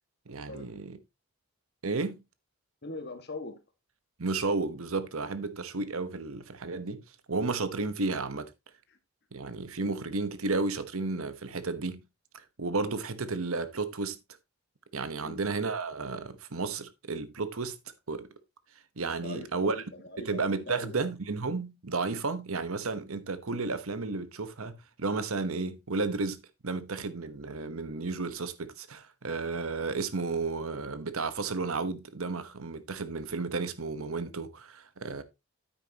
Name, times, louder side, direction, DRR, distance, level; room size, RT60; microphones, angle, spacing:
voice 1, 0.3-1.0 1.8-2.2 4.2-7.0 7.3-8.5 9.3-12.0 12.6-14.2 14.9-17.8 18.1-18.3 19.0-19.7 20.2-35.2, right 3 dB, 75° right, 1.1 m, -32 dB
voice 2, 2.8-3.6 8.9-9.0 15.2-15.4 19.2-20.4 20.7-21.1, left 2 dB, 50° left, 1.8 m, -41 dB
9.1 x 9.1 x 2.9 m
head